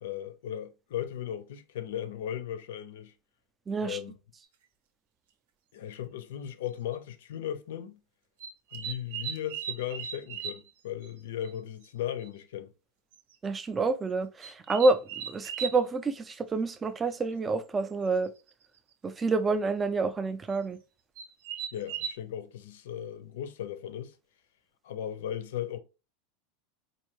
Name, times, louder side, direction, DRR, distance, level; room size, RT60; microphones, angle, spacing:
voice 1, 0.0-3.1 3.8-4.1 5.7-8.0 8.7-12.7 21.7-24.2 24.8-25.8, left 10 dB, 85° left, 0.6 m, -37 dB
voice 2, 3.7-4.0 13.4-15.0 15.3-18.3 19.0-20.8, right 3 dB, 10° right, 0.3 m, -28 dB
sound 1, 4.4-4.5 5.9-6.0 6.7-6.9 8.4-10.7 11.0-11.1 11.4-11.5 11.8-11.9 12.2-12.3 13.1-13.3 14.4-15.8 17.9-18.0 18.2-18.6 20.5-20.6 21.2-22.1, right 8 dB, 80° right, 0.7 m, -38 dB
4.2 x 2.7 x 3.0 m
supercardioid pair, 175°, 0 cm